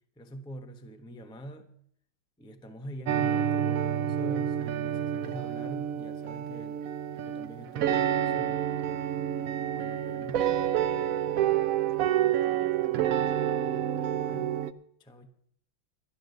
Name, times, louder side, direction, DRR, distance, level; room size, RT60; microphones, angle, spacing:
voice 1, 0.2-1.7 2.4-6.8 7.2-8.6 9.2-10.5 13.9-14.5 15.0-15.3, right 1 dB, 5° left, 0.6 m, -44 dB
sound 1, 3.1-14.7, right 10 dB, 85° right, 0.7 m, -28 dB
voice 2, 12.2-14.5, left 11 dB, 70° left, 1.5 m, -54 dB
12.5 x 11.0 x 6.7 m
omnidirectional pair, 2.2 m